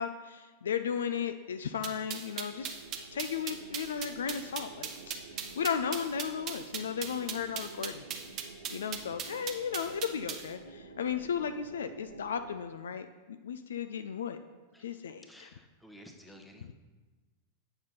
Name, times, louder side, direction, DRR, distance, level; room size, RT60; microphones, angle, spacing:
voice 1, 0.0-2.7 3.1-4.9 5.3-8.1 8.7-14.4 14.8-15.5, left 7 dB, 65° left, 9 dB, 0.3 m, -35 dB
sound 1, 1.8-10.5, right 8 dB, 35° right, 0.8 m, -38 dB
sound 2, 2.5-12.6, right 4 dB, 75° right, 0.6 m, -51 dB
voice 2, 14.7-16.7, equal, 5° left, 4 dB, 0.9 m, -54 dB
8.5 x 5.8 x 4.0 m, 1.3 s
figure-of-eight pair, 90°, 0 cm